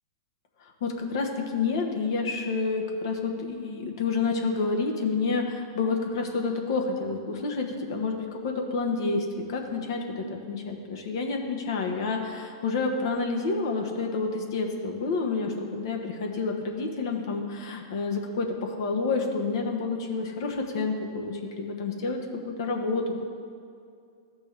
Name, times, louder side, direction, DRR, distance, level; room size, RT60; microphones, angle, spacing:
voice 1, 0.8-22.2 22.4-23.2, left 4 dB, 65° left, 3 dB, 1.1 m, -29 dB
13.5 x 6.0 x 3.4 m, 2.4 s
hypercardioid pair, 115°, 2 cm